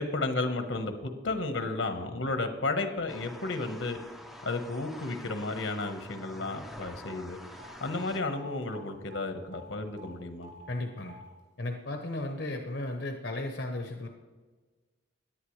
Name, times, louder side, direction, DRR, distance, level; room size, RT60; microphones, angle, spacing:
voice 1, 0.0-4.0 4.4-7.4 7.8-10.5, left 2 dB, 80° left, 7 dB, 1.3 m, -33 dB
sound 1, 3.1-8.2, equal, ahead, 0.7 m, -47 dB
sound 2, 7.1-7.2 7.6-7.7 8.0-8.5 8.7-8.8 9.1-9.2 9.5-9.6 10.0-10.1 10.4-10.7 11.1-11.2, right 1 dB, 70° right, 4.8 m, -50 dB
voice 2, 10.7-11.2 11.6-14.1, left 2 dB, 60° left, 3 dB, 1.0 m, -35 dB
17.5 x 10.5 x 3.3 m, 1.4 s
head